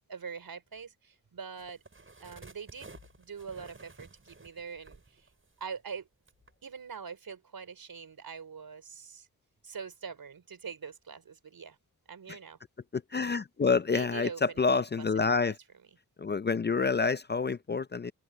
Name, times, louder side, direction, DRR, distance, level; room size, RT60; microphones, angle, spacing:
voice 1, 0.1-1.8 2.2-5.3 5.6-6.1 6.6-9.3 9.6-11.8 12.1-12.6 13.9-15.5, right 6 dB, 70° right, 4.4 m, -43 dB
sound 1, 1.6-5.9 6.3-6.5, right 3 dB, 35° right, 7.1 m, -53 dB
voice 2, 12.9-15.6 16.2-18.1, left 4 dB, 30° left, 0.4 m, -28 dB
open air
cardioid pair, 70°, 36 cm